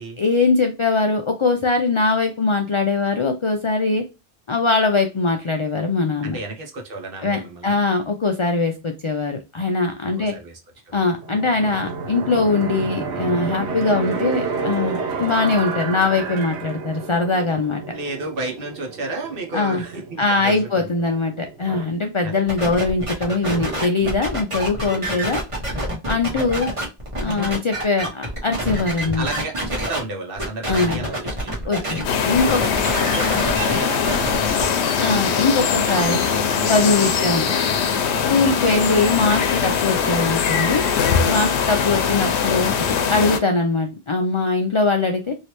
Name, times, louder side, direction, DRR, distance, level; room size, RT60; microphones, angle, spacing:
voice 1, 0.2-4.0 4.5-6.4 7.2-10.4 10.9-17.8 19.5-19.8 20.2-25.4 26.1-26.7 27.2-29.3 30.7-31.0 31.6-32.6 35.0-36.2 36.7-37.5 38.3-40.9 41.3-45.4, left 3 dB, 55° left, 4 dB, 0.3 m, -21 dB
voice 2, 6.2-7.8 10.2-10.6 10.8-11.0 17.9-21.1 22.2-22.6 29.1-31.8 32.4-35.2 35.9-37.9 38.4-38.7 41.3-41.6, right 2 dB, 60° right, 2 dB, 1.1 m, -32 dB
sound 1, 11.2-21.9, right 4 dB, 90° right, 1.0 m, -30 dB
sound 2, 22.5-30.0 30.4-32.0 32.3-34.7, right 1 dB, 30° right, 1.1 m, -27 dB
sound 3, 32.0-43.4, left 6 dB, 90° left, 0.9 m, -21 dB
3.1 x 2.7 x 2.9 m, 0.26 s
omnidirectional pair, 1.1 m